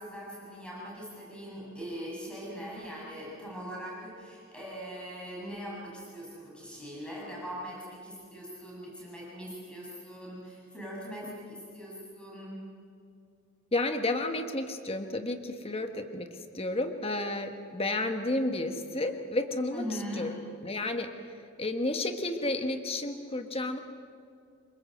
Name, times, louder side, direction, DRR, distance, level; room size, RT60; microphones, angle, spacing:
voice 1, 0.0-12.6 19.7-20.3, equal, 5° left, -5 dB, 7.0 m, -41 dB
voice 2, 13.7-16.3 16.5-20.4 20.6-21.1 21.6-23.8, left 2 dB, 25° left, 6 dB, 1.4 m, -31 dB
26.5 x 23.0 x 7.9 m, 2.3 s
head